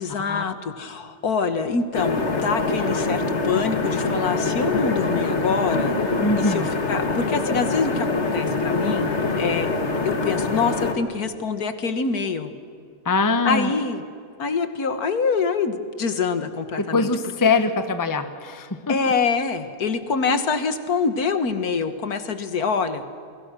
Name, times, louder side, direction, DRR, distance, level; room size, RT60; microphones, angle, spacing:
voice 1, 0.0-6.0 6.4-9.7 10.1-12.5 13.5-14.0 14.4-17.1 17.4-17.5 18.9-23.0, left 5 dB, 65° left, 10 dB, 1.9 m, -25 dB
sound 1, 1.9-10.9, left 3 dB, 40° left, 2.1 m, -24 dB
voice 2, 6.2-6.7 13.0-13.7 16.9-19.0, left 3 dB, 15° left, 9 dB, 1.1 m, -22 dB
29.0 x 23.0 x 6.2 m, 2.3 s
omnidirectional pair, 1.8 m